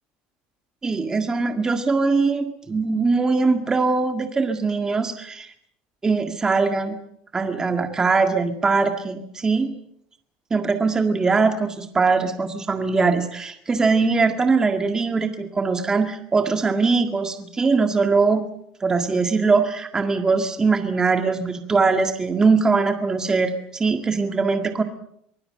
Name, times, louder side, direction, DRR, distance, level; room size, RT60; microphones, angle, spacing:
voice 1, 0.8-5.5 6.0-7.0 7.3-9.7 10.5-18.4 18.8-24.8, right 4 dB, 15° right, 6 dB, 1.9 m, -21 dB
24.5 x 19.5 x 7.7 m, 0.71 s
cardioid pair, 155°, 4 cm